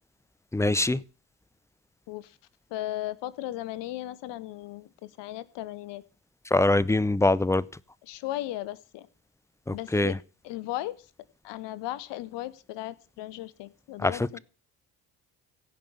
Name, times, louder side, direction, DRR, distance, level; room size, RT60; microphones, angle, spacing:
voice 1, 0.5-1.0 6.5-7.6 9.7-10.2 14.0-14.4, left 2 dB, 5° left, 0.6 m, -23 dB
voice 2, 2.1-2.4 2.7-6.0 8.1-9.1 9.7-10.2 10.4-11.1 11.4-14.4, left 15 dB, 70° left, 1.1 m, -36 dB
16.0 x 5.5 x 7.0 m
hypercardioid pair, 50°, 44 cm